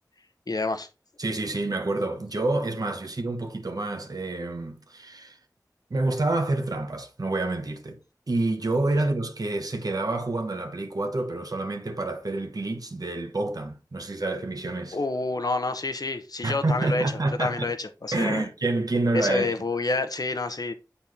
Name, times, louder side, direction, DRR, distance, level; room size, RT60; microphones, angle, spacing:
voice 1, 0.5-0.9 14.9-18.5 19.1-20.7, left 3 dB, 65° left, 0.9 m, -28 dB
voice 2, 1.2-5.4 5.9-8.0 8.3-15.0 16.4-17.7 18.1-19.5, right 2 dB, 60° right, 1.2 m, -28 dB
7.7 x 4.3 x 3.5 m
wide cardioid pair, 50°, 7 cm